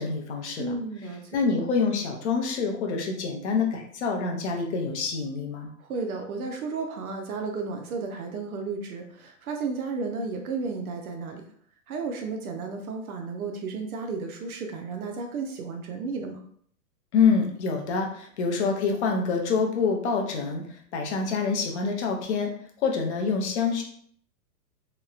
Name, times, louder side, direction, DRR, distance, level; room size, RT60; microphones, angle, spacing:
voice 1, 0.0-0.7 1.3-5.7 17.1-22.5 22.8-23.8, left 5 dB, 45° left, 2 dB, 0.5 m, -26 dB
voice 2, 0.6-1.4 5.8-11.4 11.9-16.4, right 4 dB, 60° right, 3 dB, 0.5 m, -33 dB
2.9 x 2.1 x 2.3 m, 0.62 s
hypercardioid pair, 160°, 50 cm